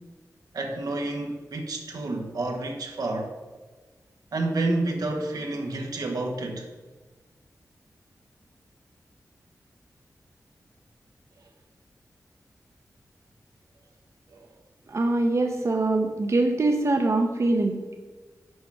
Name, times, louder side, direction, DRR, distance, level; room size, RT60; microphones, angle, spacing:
voice 1, 0.5-3.3 4.3-6.7 14.3-14.5, right 2 dB, 85° right, 2 dB, 1.0 m, -29 dB
voice 2, 14.9-17.9, right 2 dB, 50° right, 4 dB, 0.7 m, -23 dB
6.3 x 4.7 x 6.0 m, 1.3 s
wide cardioid pair, 75°, 6 cm